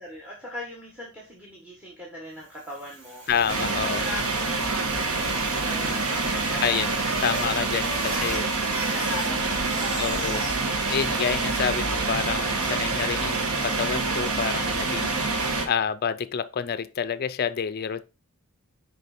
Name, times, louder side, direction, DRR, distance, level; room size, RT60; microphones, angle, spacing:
voice 1, 0.0-3.6 3.9-7.0 7.4-8.4 8.8-10.5, left 1 dB, 5° right, 1.5 m, -40 dB
Bicycle, 2.5-11.9, right 1 dB, 60° right, 3.7 m, -39 dB
voice 2, 3.3-4.0 6.6-6.9 7.2-8.5 10.0-10.4 10.9-15.2 15.7-18.0, left 7 dB, 45° left, 0.4 m, -28 dB
sound 1, 3.3-5.2, left 1 dB, 45° right, 2.9 m, -48 dB
sound 2, 3.5-15.7, right 3 dB, 80° right, 1.2 m, -26 dB
6.5 x 5.2 x 4.2 m
head